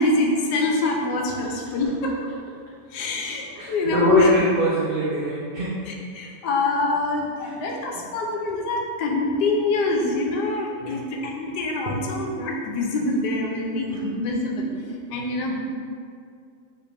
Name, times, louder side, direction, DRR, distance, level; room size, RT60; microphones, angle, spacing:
voice 1, 0.0-2.3 2.9-4.3 5.9-14.7 15.1-15.6, left 2 dB, 85° left, 0 dB, 1.2 m, -25 dB
voice 2, 3.5-5.7 7.4-7.5 7.9-8.1 10.8-11.0 13.9-14.0 15.1-15.3, equal, 70° right, -6 dB, 0.5 m, -23 dB
4.9 x 3.3 x 3.3 m, 2.3 s
omnidirectional pair, 1.8 m